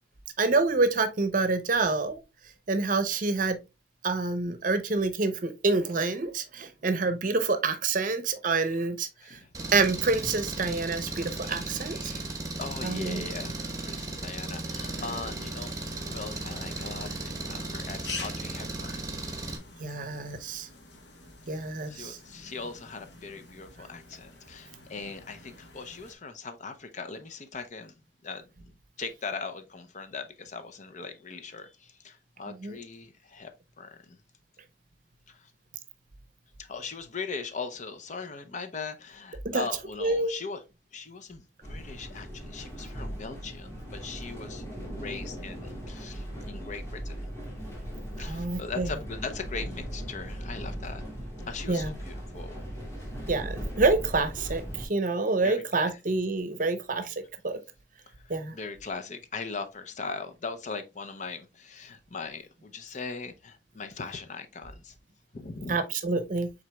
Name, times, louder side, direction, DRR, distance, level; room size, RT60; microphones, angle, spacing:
voice 1, 0.4-2.2 2.7-3.6 4.0-9.4 9.7-12.1 12.8-13.2 19.8-20.7 21.5-22.2 32.5-32.8 39.4-39.7 40.0-40.3 48.2-48.9 51.7-51.9 53.3-57.1 57.4-57.6 58.3-58.6 65.7-66.5, right 3 dB, 50° right, 0.7 m, -27 dB
Engine, 9.5-19.6, right 2 dB, 20° right, 0.9 m, -36 dB
voice 2, 11.4-12.3 12.6-15.8 16.1-19.0 21.9-27.9 28.2-28.4 29.0-33.5 33.8-34.2 35.3-35.4 36.7-40.6 40.9-44.6 44.9-47.2 48.2-51.0 51.5-52.6 55.4-56.0 58.5-64.9 65.3-65.8, left 4 dB, 45° left, 0.6 m, -40 dB
sound 1, 14.8-26.2, left 3 dB, 75° left, 1.2 m, -46 dB
sound 2, 41.6-54.9, equal, 15° left, 1.7 m, -38 dB
6.0 x 3.9 x 2.2 m
head